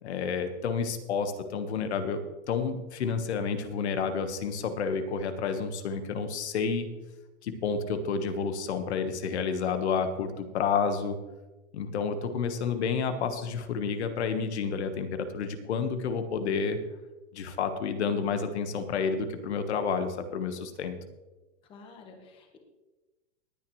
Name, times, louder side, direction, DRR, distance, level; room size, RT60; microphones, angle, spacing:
voice 1, 0.0-2.2 2.5-6.9 7.4-11.2 11.7-16.8 17.3-21.0, left 5 dB, 75° left, 8 dB, 1.4 m, -30 dB
voice 2, 21.7-22.6, left 4 dB, 15° left, 3 dB, 1.2 m, -50 dB
19.0 x 9.1 x 3.1 m, 1.1 s
supercardioid pair, 175°, 33 cm